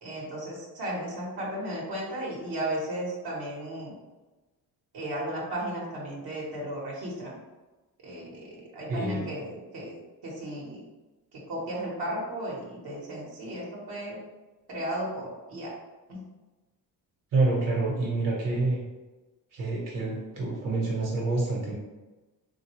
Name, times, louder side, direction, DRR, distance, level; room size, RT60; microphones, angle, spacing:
voice 1, 0.0-4.0 4.9-7.4 8.0-10.8 11.3-14.2 14.7-15.7 16.1-16.2, right 1 dB, 80° right, -4 dB, 1.1 m, -35 dB
voice 2, 8.9-9.3 17.3-18.8 19.5-21.8, right 3 dB, 60° right, -3 dB, 1.1 m, -27 dB
3.4 x 2.4 x 3.0 m, 1.2 s
cardioid pair, 105°, 37 cm